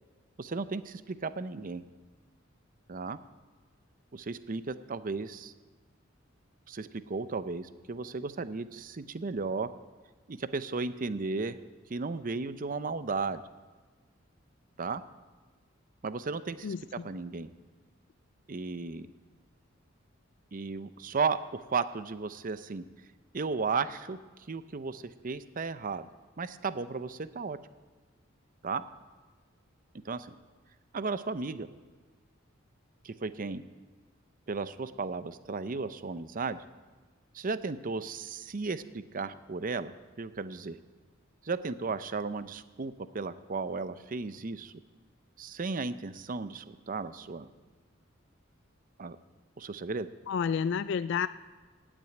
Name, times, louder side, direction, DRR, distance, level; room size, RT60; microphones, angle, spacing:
voice 1, 0.4-1.8 2.9-3.2 4.1-5.5 6.7-9.7 10.3-11.6 11.9-13.4 14.8-15.0 16.0-17.5 18.5-19.1 20.5-22.8 23.3-24.2 24.5-26.1 26.4-27.6 28.6-28.8 30.0-30.3 30.9-31.7 33.0-33.6 34.5-36.6 37.3-40.8 41.4-44.7 45.4-47.5 49.0-49.2 49.6-50.1, right 4 dB, 40° right, 13 dB, 0.6 m, -35 dB
voice 2, 16.6-17.1 50.3-51.3, left 6 dB, 60° left, 15 dB, 0.3 m, -30 dB
17.0 x 6.2 x 9.2 m, 1.4 s
head